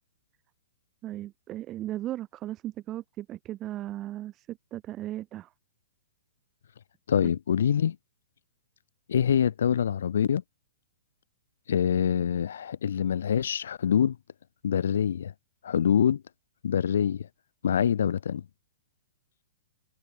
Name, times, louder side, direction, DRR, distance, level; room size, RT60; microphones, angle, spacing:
voice 1, 1.0-5.5, right 14 dB, 15° right, 0.8 m, -36 dB
voice 2, 7.1-8.0 9.1-10.4 11.7-14.2 14.6-15.3 15.6-16.2 16.6-17.3 17.6-18.4, left 8 dB, 70° left, 0.6 m, -25 dB
hypercardioid pair, 175°, 0 cm